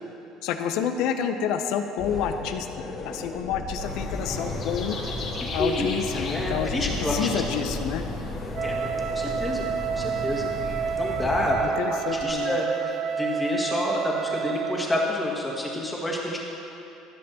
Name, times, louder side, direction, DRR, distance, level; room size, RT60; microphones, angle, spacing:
voice 1, 0.4-5.0 5.5-8.1 11.8-12.6, left 8 dB, 70° left, 7 dB, 0.6 m, -29 dB
sound 1, 2.0-12.3, left 4 dB, 30° left, 0.7 m, -37 dB
sound 2, 3.8-11.5, left 1 dB, 50° left, 1.6 m, -34 dB
voice 2, 6.3-7.4 8.6-8.7 9.1-9.6 9.9-10.5 10.9-16.4, left 1 dB, 15° left, -3 dB, 1.7 m, -28 dB
Wind instrument woodwind instrument, 8.5-15.0, right 7 dB, 45° right, 0.4 m, -29 dB
14.5 x 6.6 x 2.8 m, 2.9 s
supercardioid pair, 100°, 0 cm